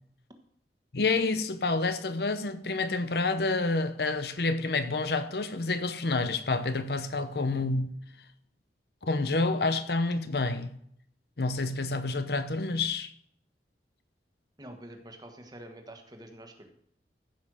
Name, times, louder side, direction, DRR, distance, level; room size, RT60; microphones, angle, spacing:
voice 1, 0.9-8.0 9.0-10.8 11.4-13.1, left 3 dB, 65° left, 0.8 m, -28 dB
voice 2, 14.6-16.7, right 1 dB, 25° right, 1.4 m, -47 dB
15.0 x 5.5 x 6.4 m
head